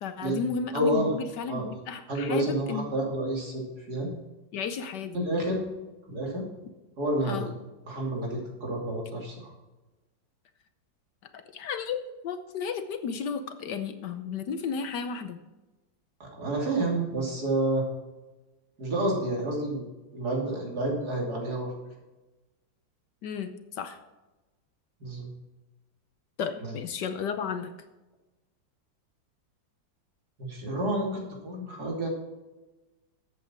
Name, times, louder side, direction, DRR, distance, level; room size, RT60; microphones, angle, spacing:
voice 1, 0.0-2.9 4.5-5.2 7.2-7.5 11.3-15.4 23.2-24.0 26.4-27.7, left 6 dB, 65° left, 9 dB, 1.3 m, -33 dB
voice 2, 0.7-1.2 1.5-1.6 2.1-4.1 5.1-5.6 6.1-6.5 7.0-7.5 7.9-9.5 16.2-17.8 18.8-19.8 20.1-21.7 25.0-25.3 30.4-32.1, right 1 dB, 55° right, -1 dB, 3.4 m, -29 dB
13.0 x 8.5 x 4.4 m, 1.1 s
omnidirectional pair, 2.1 m